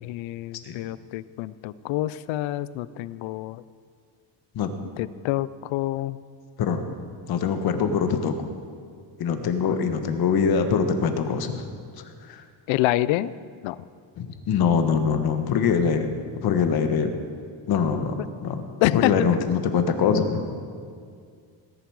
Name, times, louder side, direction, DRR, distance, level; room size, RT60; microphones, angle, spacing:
voice 1, 0.0-3.6 5.0-6.2 9.4-9.8 12.7-13.3 13.6-13.8 18.8-19.1, left 16 dB, 75° left, 18 dB, 0.6 m, -27 dB
voice 2, 7.3-8.3 9.2-11.6 12.3-12.4 14.2-16.1 16.3-17.1 17.7-18.7 18.9-20.4, left 6 dB, 50° left, 7 dB, 1.3 m, -23 dB
18.5 x 10.5 x 4.7 m, 2.2 s
cardioid pair, 160°, 46 cm